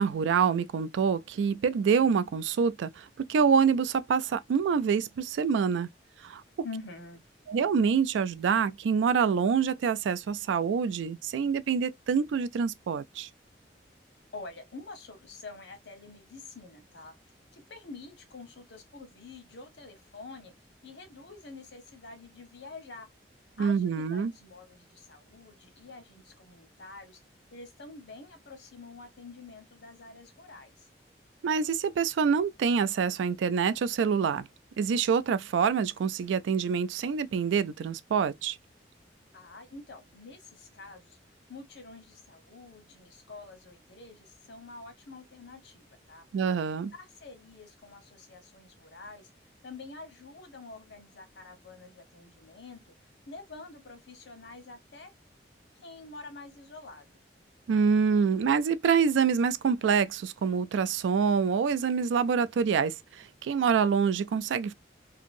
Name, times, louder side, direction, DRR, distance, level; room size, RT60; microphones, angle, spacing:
voice 1, 0.0-2.9 3.2-5.9 6.2-6.4 7.5-13.3 23.6-24.3 31.4-34.4 34.8-38.6 46.3-46.9 57.7-62.9 63.4-64.7, right 6 dB, 90° right, 0.3 m, -26 dB
voice 2, 6.6-7.2 14.3-17.1 17.5-20.5 20.8-23.1 23.6-27.2 27.5-30.9 39.3-41.2 41.5-46.2 46.9-49.3 49.6-52.9 53.3-55.1 55.8-57.1, left 3 dB, 75° left, 1.0 m, -47 dB
2.8 x 2.6 x 2.5 m
head